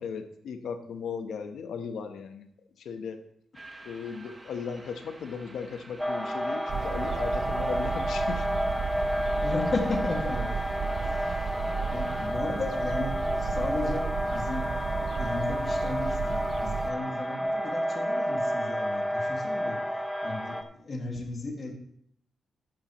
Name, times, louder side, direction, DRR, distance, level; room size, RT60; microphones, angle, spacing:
voice 1, 0.0-2.5 2.8-3.2 3.8-8.5, left 6 dB, 85° left, 8 dB, 1.0 m, -37 dB
sound 1, 3.5-12.3, right 2 dB, 20° right, 1.3 m, -50 dB
sound 2, 6.0-20.6, equal, ahead, 0.9 m, -30 dB
sound 3, 6.7-16.9, right 6 dB, 55° right, 0.4 m, -34 dB
voice 2, 9.4-10.6 11.0-11.3 11.9-19.8 20.2-21.7, left 3 dB, 40° left, 2 dB, 2.1 m, -35 dB
13.0 x 10.5 x 3.1 m, 0.68 s
wide cardioid pair, 125°, 0 cm